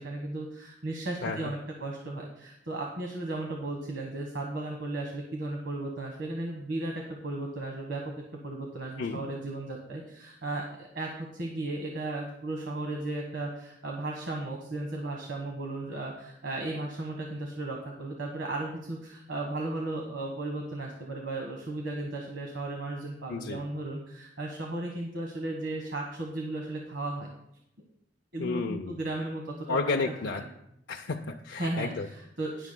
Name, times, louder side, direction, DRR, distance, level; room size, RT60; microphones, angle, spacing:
voice 1, 0.0-8.0 8.4-27.3 28.3-29.8 30.3-30.4 31.6-32.7, right 2 dB, 80° right, 1 dB, 1.4 m, -35 dB
voice 2, 1.2-1.5 9.0-9.2 23.3-23.6 28.4-29.0 29.7-30.4 30.9-32.1, left 3 dB, 80° left, 2 dB, 0.5 m, -31 dB
20.0 x 7.1 x 2.3 m, 0.79 s
head